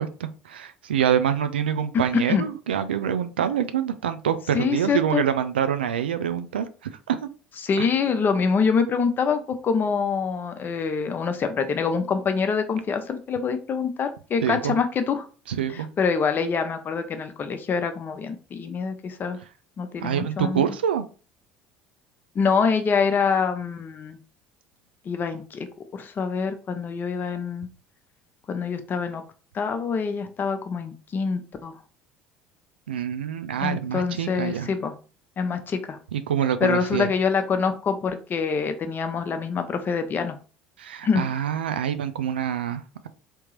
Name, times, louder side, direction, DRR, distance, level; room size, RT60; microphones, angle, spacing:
voice 1, 0.0-7.3 7.8-7.9 14.4-14.7 15.5-15.9 20.0-21.1 32.9-34.7 36.1-37.1 40.8-43.1, right 9 dB, 85° right, 11 dB, 0.3 m, -26 dB
voice 2, 2.1-2.5 4.5-5.2 7.6-15.3 15.7-19.4 19.8-20.7 22.3-24.2 25.1-25.7 25.9-27.7 28.5-29.2 29.5-31.8 33.6-34.9 35.4-36.0 36.6-40.4 41.0-41.3, left 5 dB, 40° left, 8 dB, 0.7 m, -25 dB
3.5 x 2.9 x 3.0 m, 0.37 s
hypercardioid pair, 65°, 5 cm